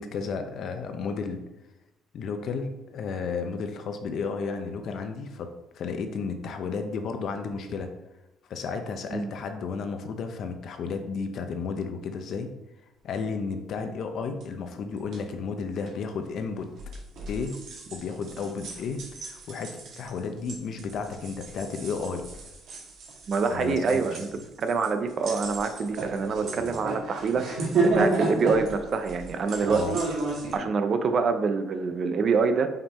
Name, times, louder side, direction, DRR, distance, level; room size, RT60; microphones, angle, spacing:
voice 1, 0.0-1.4 2.1-7.9 8.5-12.5 13.0-16.7 17.3-17.6 17.9-22.3 23.5-24.0 29.6-30.0, left 5 dB, 50° left, 6 dB, 0.8 m, -33 dB
sound 1, 14.4-14.5 15.0-15.2 15.9-16.0 16.7-30.5, right 3 dB, 55° right, 1.6 m, -32 dB
voice 2, 23.3-24.3 24.6-29.8 30.5-32.7, right 5 dB, 35° right, 8 dB, 0.5 m, -26 dB
5.8 x 5.4 x 4.2 m, 0.94 s
cardioid pair, 165°, 0 cm